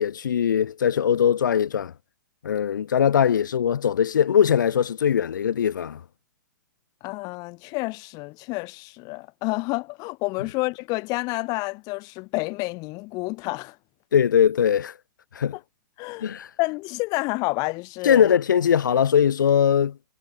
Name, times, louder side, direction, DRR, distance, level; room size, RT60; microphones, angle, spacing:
voice 1, 0.0-1.9 2.4-6.0 14.1-14.9 15.3-15.6 16.2-16.5 18.0-20.0, left 8 dB, 75° left, 1.4 m, -21 dB
voice 2, 7.0-13.8 15.5-15.6 16.0-18.3, left 25 dB, 35° left, 2.3 m, -29 dB
hypercardioid pair, 125°, 10 cm